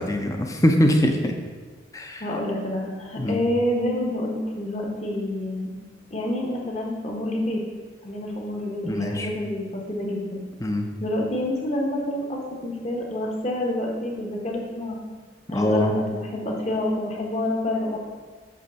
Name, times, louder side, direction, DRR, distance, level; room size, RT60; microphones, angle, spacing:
voice 1, 0.0-1.3 1.9-2.2 3.2-3.4 8.8-9.3 10.6-10.9 15.5-15.9, left 1 dB, 15° left, 3 dB, 0.6 m, -22 dB
voice 2, 2.2-5.7 6.1-7.6 8.0-10.4 11.0-15.0 15.5-18.0, left 1 dB, 35° left, -1 dB, 1.3 m, -28 dB
8.1 x 3.2 x 6.4 m, 1.4 s
head